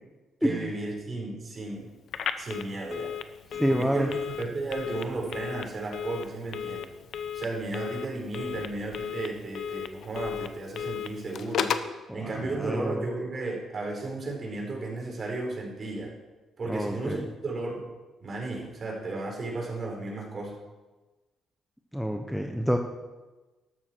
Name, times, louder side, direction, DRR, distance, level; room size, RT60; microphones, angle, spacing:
voice 1, 0.4-1.9 2.4-3.1 3.7-6.9 7.3-11.8 12.1-16.1 16.6-17.8 18.2-20.6, right 2 dB, 40° right, -1 dB, 4.7 m, -34 dB
Telephone, 2.1-12.0, left 8 dB, 70° left, 0.8 m, -35 dB
voice 2, 3.5-4.1 12.1-13.1 16.7-17.2 21.9-22.8, equal, ahead, 3 dB, 1.0 m, -28 dB
13.0 x 12.5 x 4.6 m, 1.2 s
cardioid pair, 90°, 0 cm